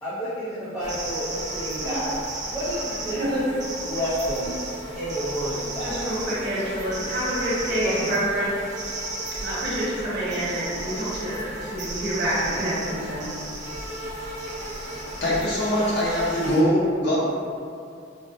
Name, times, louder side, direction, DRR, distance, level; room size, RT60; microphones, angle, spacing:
voice 1, 0.0-3.4 3.8-4.6 5.0-6.0 7.8-8.1, equal, 20° left, -14 dB, 0.7 m, -30 dB
sound 1, 0.8-16.6, right 2 dB, 40° right, 0.5 m, -34 dB
voice 2, 3.1-3.4 5.8-8.5 9.4-13.3, right 1 dB, 60° right, -9 dB, 1.2 m, -27 dB
voice 3, 14.8-17.2, equal, 60° left, -7 dB, 1.0 m, -23 dB
4.8 x 2.1 x 2.6 m, 2.4 s
head